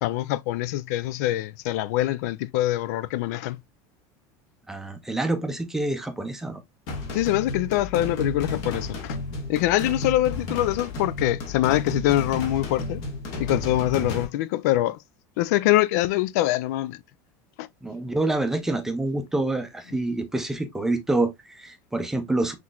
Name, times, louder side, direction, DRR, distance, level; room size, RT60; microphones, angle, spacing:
voice 1, 0.0-3.6 7.1-9.2 9.5-13.0 13.4-15.0 15.4-17.0 17.6-17.7, left 15 dB, 75° left, 0.4 m, -24 dB
voice 2, 4.7-6.6 17.8-22.5, right 2 dB, 5° right, 0.5 m, -27 dB
sound 1, 6.9-14.2, left 2 dB, 50° left, 1.6 m, -32 dB
5.9 x 3.1 x 2.3 m
cardioid pair, 170°, 9 cm